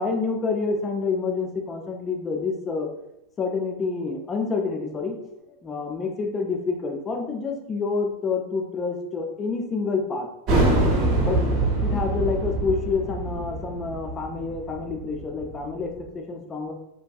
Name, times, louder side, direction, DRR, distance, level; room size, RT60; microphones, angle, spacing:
voice 1, 0.0-2.9 3.4-5.2 5.6-10.3 11.2-11.4 11.8-16.7, left 4 dB, 20° left, 3 dB, 0.4 m, -28 dB
sound 1, 10.5-15.8, right 2 dB, 40° right, 0.6 m, -24 dB
2.6 x 2.2 x 2.3 m, 0.84 s
figure-of-eight pair, 90°, 0 cm